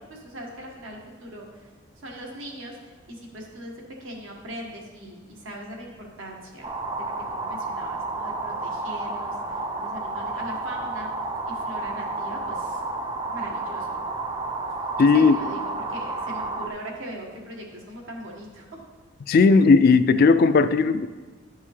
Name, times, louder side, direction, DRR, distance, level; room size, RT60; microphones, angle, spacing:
voice 1, 0.1-1.7 2.0-3.7 4.0-6.7 7.0-11.1 11.5-12.8 13.3-14.0 15.0-18.8, right 1 dB, 80° right, -1 dB, 1.5 m, -40 dB
sound 1, 6.6-16.7, right 3 dB, 20° right, 0.4 m, -31 dB
voice 2, 15.0-15.4 19.3-21.1, left 4 dB, 50° left, 12 dB, 0.3 m, -16 dB
11.0 x 5.5 x 3.3 m, 1.3 s
head